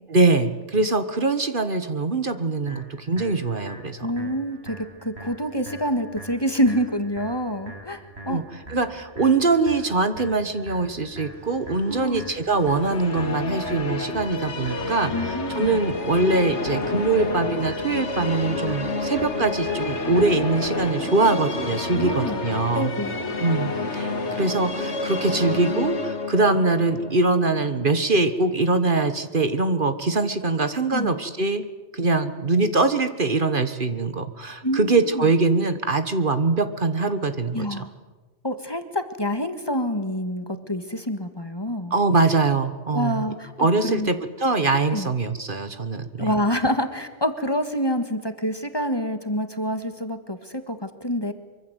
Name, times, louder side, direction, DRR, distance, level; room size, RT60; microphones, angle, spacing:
voice 1, 0.1-4.1 8.3-8.4 8.7-22.9 23.4-31.6 31.9-37.8 41.9-43.2 43.6-46.3, right 3 dB, 50° right, 10 dB, 1.5 m, -23 dB
sound 1, 2.7-20.6, right 1 dB, 65° right, 6.6 m, -43 dB
voice 2, 4.0-8.5 11.9-12.3 15.1-15.8 21.9-22.4 22.7-23.2 30.9-31.1 34.6-35.3 37.5-37.9 38.4-41.9 42.9-44.1 44.9-45.1 46.2-51.3, equal, 20° left, 8 dB, 1.7 m, -27 dB
sound 2, 11.4-25.7, right 1 dB, 85° right, 4.7 m, -37 dB
sound 3, 12.6-28.7, left 3 dB, 75° left, 2.1 m, -30 dB
24.5 x 24.0 x 8.1 m, 1.2 s
omnidirectional pair, 1.2 m